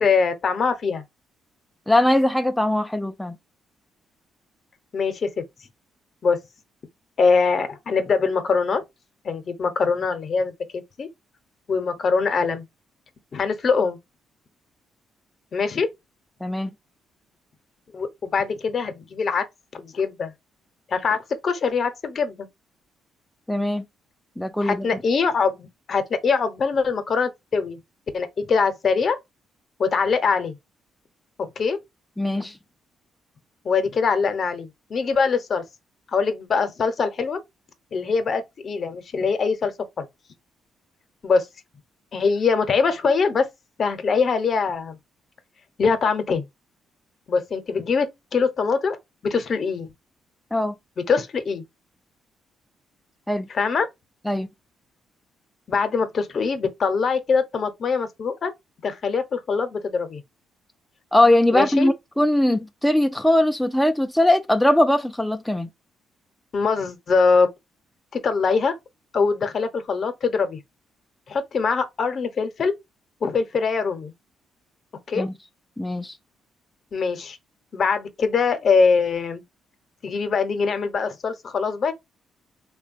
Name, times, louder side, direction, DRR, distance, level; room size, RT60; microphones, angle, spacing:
voice 1, 0.0-1.0 4.9-5.4 6.2-6.4 7.2-8.8 9.2-11.1 11.7-12.7 13.3-14.0 15.5-15.9 17.9-19.5 19.7-20.3 20.9-22.5 24.6-27.8 28.1-29.2 29.8-30.6 31.6-31.8 33.6-35.6 36.1-37.4 37.9-40.1 41.2-41.5 42.1-43.5 43.8-45.0 45.8-46.5 47.3-49.0 49.2-49.9 51.1-51.6 53.5-53.9 55.7-58.5 58.8-60.2 61.5-61.9 66.5-67.5 68.1-68.7 69.1-70.6 71.3-72.7 73.2-74.1 75.1-75.3 76.9-77.4 77.7-79.4 80.0-81.9, left 5 dB, 50° left, 0.7 m, -23 dB
voice 2, 1.9-3.4 16.4-16.7 23.5-23.8 24.4-24.9 32.2-32.6 50.5-50.7 53.3-53.5 54.3-54.5 61.1-65.7 75.2-75.3 75.8-76.2, left 1 dB, 5° left, 0.3 m, -20 dB
3.1 x 2.2 x 2.5 m
cardioid pair, 90°, 0 cm